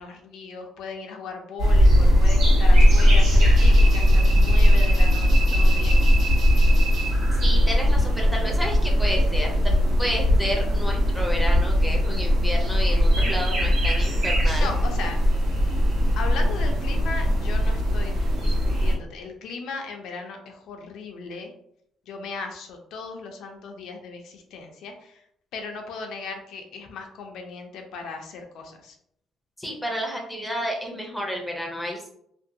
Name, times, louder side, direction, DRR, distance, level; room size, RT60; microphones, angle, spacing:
voice 1, 0.0-6.1 14.6-15.2 15.5-15.7 16.2-21.5 22.1-25.2 25.5-29.0, left 4 dB, 65° left, 3 dB, 0.4 m, -37 dB
sound 1, 1.6-18.9, equal, 75° right, 1.2 m, -19 dB
voice 2, 7.4-9.7 10.0-14.7 29.6-32.1, equal, ahead, -1 dB, 0.5 m, -31 dB
2.6 x 2.2 x 2.6 m, 0.71 s
cardioid pair, 175°, 0 cm